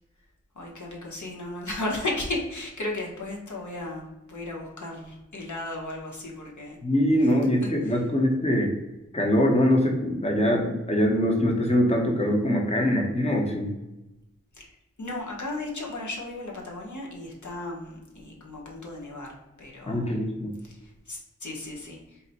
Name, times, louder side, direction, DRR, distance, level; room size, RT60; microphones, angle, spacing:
voice 1, 0.5-6.8 7.6-8.0 14.5-20.1 20.6-22.2, left 2 dB, 80° left, -1 dB, 0.9 m, -35 dB
voice 2, 6.8-8.7 9.1-13.7 19.9-20.5, equal, 20° left, 0 dB, 0.8 m, -23 dB
4.1 x 2.1 x 4.0 m, 0.98 s
wide cardioid pair, 45°, 29 cm